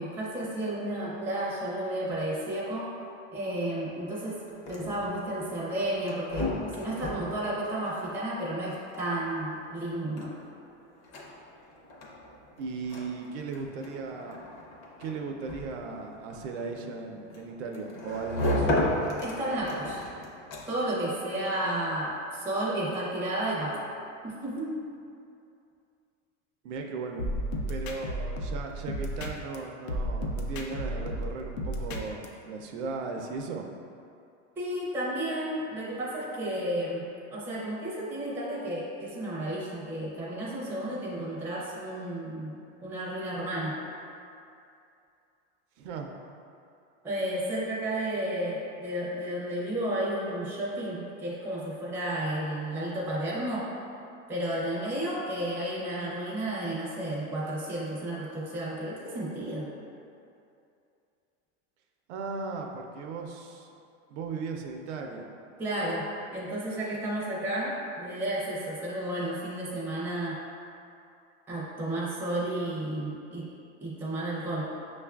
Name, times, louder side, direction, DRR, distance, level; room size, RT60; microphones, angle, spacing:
voice 1, 0.0-2.9 3.3-4.4 4.7-10.3 19.2-20.0 20.7-23.8 24.2-24.8 34.6-43.8 47.0-53.7 54.3-59.7 65.6-70.4 71.5-73.5 73.8-74.7, right 1 dB, 5° right, -7 dB, 0.4 m, -32 dB
sound 1, 4.4-21.0, left 1 dB, 35° left, 0.6 m, -35 dB
voice 2, 12.6-14.4 15.0-18.7 26.6-27.3 27.7-33.7 45.8-46.1 62.1-63.7 64.1-65.3, right 4 dB, 65° right, 2 dB, 0.5 m, -37 dB
sound 2, 27.2-29.6 29.9-32.3, equal, 85° left, 0.6 m, -33 dB
5.9 x 2.4 x 2.3 m, 2.6 s
supercardioid pair, 140°, 38 cm